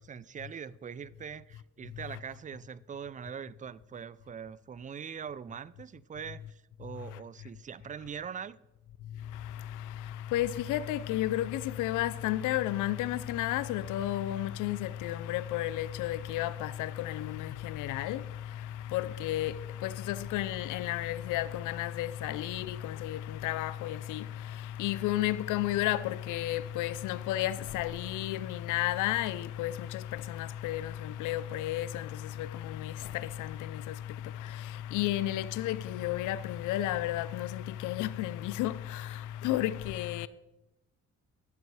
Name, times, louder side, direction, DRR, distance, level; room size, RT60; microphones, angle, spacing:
voice 1, 0.0-8.6, right 7 dB, 25° right, 0.4 m, -42 dB
voice 2, 9.1-40.3, left 13 dB, 85° left, 0.5 m, -33 dB
12.0 x 7.5 x 4.7 m
cardioid pair, 90°, 30 cm